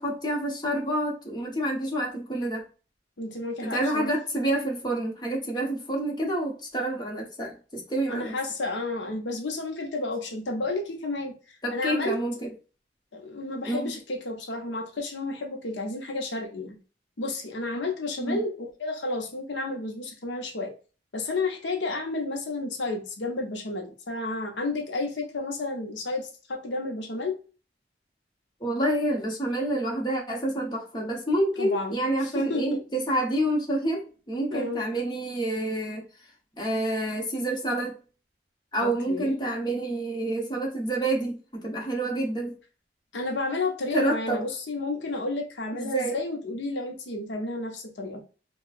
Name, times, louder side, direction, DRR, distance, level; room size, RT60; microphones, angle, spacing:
voice 1, 0.0-2.6 3.6-8.3 11.6-12.5 13.7-13.9 18.2-18.4 28.6-36.0 36.6-38.0 38.7-42.6 43.9-44.4 45.7-46.2, right 1 dB, 25° left, 1.0 m, -28 dB
voice 2, 3.2-4.1 8.1-12.2 13.1-16.8 17.2-20.7 21.1-27.4 31.6-32.8 34.5-34.8 38.8-39.4 43.1-48.2, left 2 dB, 80° left, 0.8 m, -31 dB
4.8 x 2.3 x 2.5 m
head